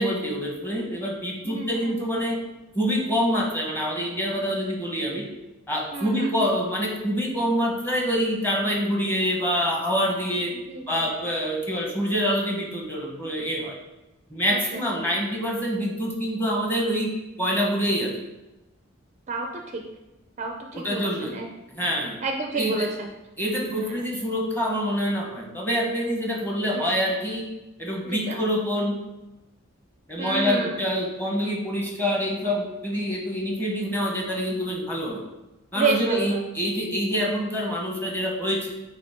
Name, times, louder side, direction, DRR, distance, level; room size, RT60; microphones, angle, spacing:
voice 1, 0.0-2.4 2.7-5.3 5.7-10.5 10.9-13.7 14.3-17.1 17.4-18.1 20.7-21.3 21.7-22.2 22.5-22.9 23.4-27.4 27.8-28.9 30.1-35.2 35.7-38.6, equal, 10° left, -2 dB, 1.2 m, -26 dB
voice 2, 1.4-1.9 5.9-6.4 10.5-11.2 14.5-15.1 19.3-19.8 20.4-21.5 22.2-23.1 23.7-24.1 26.7-27.0 28.0-28.4 30.2-30.7 35.7-36.4, right 4 dB, 35° right, 3 dB, 0.4 m, -30 dB
8.8 x 3.1 x 3.6 m, 1.0 s
head